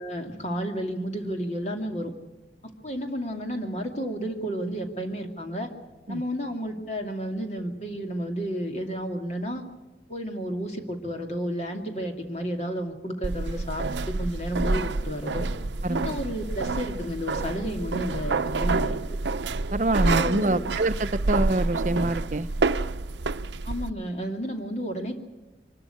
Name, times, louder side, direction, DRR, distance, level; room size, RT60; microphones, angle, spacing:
voice 1, 0.0-2.1 2.8-5.7 6.1-9.6 10.1-15.5 15.9-19.0 20.0-20.6 23.6-25.2, equal, 40° left, 3 dB, 2.5 m, -31 dB
sound 1, 13.2-23.9, right 3 dB, 90° right, 0.7 m, -28 dB
voice 2, 15.8-16.2 19.7-22.5, right 2 dB, 45° right, 12 dB, 0.6 m, -25 dB
24.5 x 13.0 x 10.0 m, 1.1 s
head